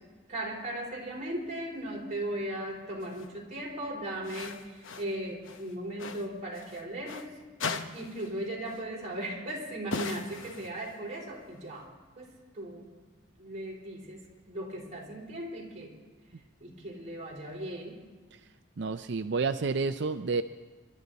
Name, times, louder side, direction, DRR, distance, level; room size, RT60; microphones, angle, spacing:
voice 1, 0.3-7.3 7.7-11.9 12.2-12.8 13.4-14.2 14.5-15.9 16.6-18.0, right 1 dB, 35° right, -2 dB, 3.7 m, -37 dB
sound 1, 3.0-3.3 4.2-5.2 5.4-7.3 7.6-8.4 8.7-8.8 9.9-11.0, left 4 dB, 75° left, 0.9 m, -39 dB
voice 2, 18.8-20.4, right 4 dB, 60° right, 9 dB, 0.5 m, -29 dB
28.0 x 12.5 x 4.1 m, 1.4 s
head